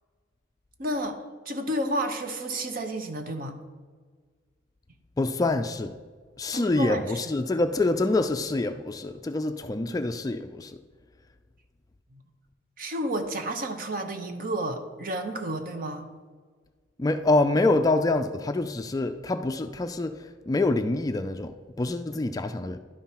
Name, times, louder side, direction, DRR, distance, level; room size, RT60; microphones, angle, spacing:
voice 1, 0.8-3.6 6.5-7.3 12.1-12.2 12.8-16.1, right 1 dB, 50° right, 6 dB, 0.8 m, -31 dB
voice 2, 5.2-5.9 6.4-10.8 17.0-22.8, left 2 dB, 20° left, 8 dB, 0.3 m, -26 dB
11.0 x 5.6 x 4.3 m, 1.6 s
head